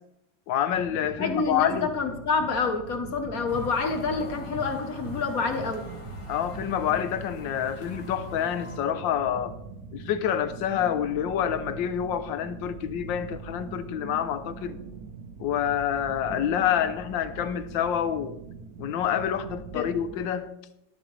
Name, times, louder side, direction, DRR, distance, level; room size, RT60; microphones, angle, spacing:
voice 1, 0.5-1.9 6.3-9.6 9.9-14.8 15.4-18.4 18.8-20.5, left 9 dB, 75° left, 1.5 m, -27 dB
sound 1, 0.7-20.3, right 5 dB, 60° right, 1.2 m, -42 dB
voice 2, 1.2-5.8 19.7-19.9, left 4 dB, 50° left, 1.5 m, -28 dB
sound 2, 3.5-8.8, equal, 15° left, 1.5 m, -41 dB
12.0 x 11.0 x 3.3 m
omnidirectional pair, 2.1 m